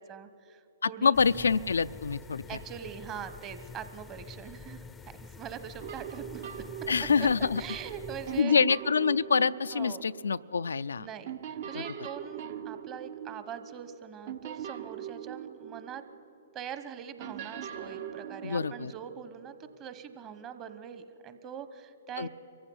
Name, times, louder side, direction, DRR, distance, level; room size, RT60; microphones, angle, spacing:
voice 1, 0.0-1.2 2.5-6.5 7.2-7.3 7.6-8.6 9.7-10.0 11.0-16.0 16.5-22.3, right 8 dB, 30° right, 11 dB, 1.1 m, -43 dB
voice 2, 0.8-2.4 6.9-7.6 8.4-11.1 18.4-18.9 22.2-22.3, left 5 dB, 85° left, 13 dB, 0.4 m, -26 dB
sound 1, 1.1-8.4, left 5 dB, 10° left, 0.5 m, -47 dB
sound 2, 5.8-10.9 11.3-16.5 17.2-19.9, right 9 dB, 55° right, 0.9 m, -42 dB
23.5 x 15.0 x 8.6 m, 2.9 s
hypercardioid pair, 135°, 0 cm